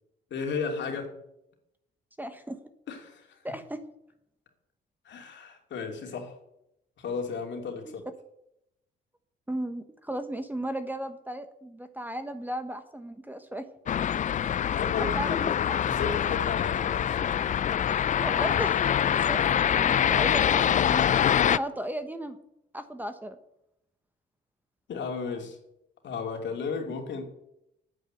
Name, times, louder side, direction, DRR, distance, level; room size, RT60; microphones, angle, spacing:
voice 1, 0.3-1.1 2.9-3.3 5.0-6.4 7.0-8.0 14.7-15.5 15.8-17.5 21.2-21.4 24.9-25.6 26.0-27.2, left 5 dB, 65° left, 3 dB, 2.8 m, -34 dB
voice 2, 2.2-2.6 3.4-3.8 7.8-7.9 9.5-13.6 15.0-15.8 18.2-21.0 21.4-22.4 22.7-23.4, right 1 dB, 10° right, 9 dB, 1.1 m, -35 dB
sound 1, 13.9-21.6, left 9 dB, 40° left, 0.4 m, -25 dB
9.8 x 9.3 x 7.8 m, 0.82 s
cardioid pair, 90°, 20 cm